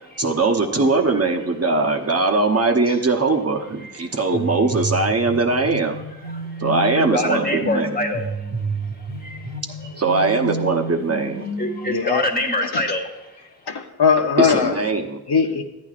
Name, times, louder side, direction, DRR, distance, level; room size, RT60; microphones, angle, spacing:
voice 1, 0.2-6.0 6.6-8.0 10.0-11.4 14.4-15.2, right 3 dB, 40° right, 2 dB, 0.9 m, -20 dB
voice 2, 0.7-1.3 2.9-3.0 3.8-3.9 6.2-6.5 6.9-8.3 9.2-9.6 11.6-13.3, left 1 dB, 25° left, 2 dB, 1.4 m, -26 dB
sound 1, 4.3-11.9, right 3 dB, 75° right, 1.1 m, -30 dB
voice 3, 11.8-12.3 12.7-12.8 13.7-14.7 15.3-15.6, left 6 dB, 75° left, 3 dB, 0.9 m, -19 dB
14.5 x 9.5 x 2.5 m, 0.96 s
wide cardioid pair, 85°, 39 cm